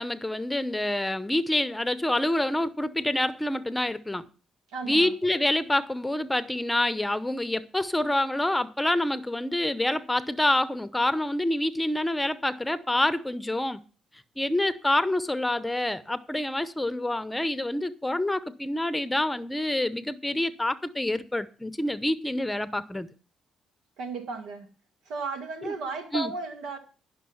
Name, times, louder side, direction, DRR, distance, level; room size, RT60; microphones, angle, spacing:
voice 1, 0.0-4.3 4.9-13.8 14.4-23.1 25.6-25.7 26.1-26.3, left 1 dB, 10° left, 0.8 m, -27 dB
voice 2, 4.7-5.1 24.0-24.7 25.1-26.8, right 4 dB, 90° right, 2.0 m, -34 dB
11.0 x 6.2 x 7.1 m
cardioid pair, 90°, 0 cm